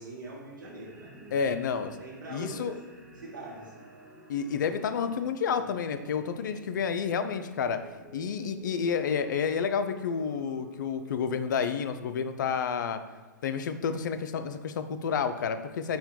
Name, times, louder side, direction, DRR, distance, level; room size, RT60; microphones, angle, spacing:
voice 1, 0.0-2.8 3.1-3.9, right 2 dB, 80° right, -3 dB, 1.2 m, -44 dB
sound 1, 0.6-13.3, right 2 dB, 20° right, 1.0 m, -52 dB
voice 2, 1.3-1.9 2.3-2.7 4.3-7.8 8.1-13.0 13.4-16.0, left 6 dB, 70° left, 10 dB, 0.3 m, -30 dB
4.3 x 2.2 x 3.7 m, 1.4 s
hypercardioid pair, 115°, 11 cm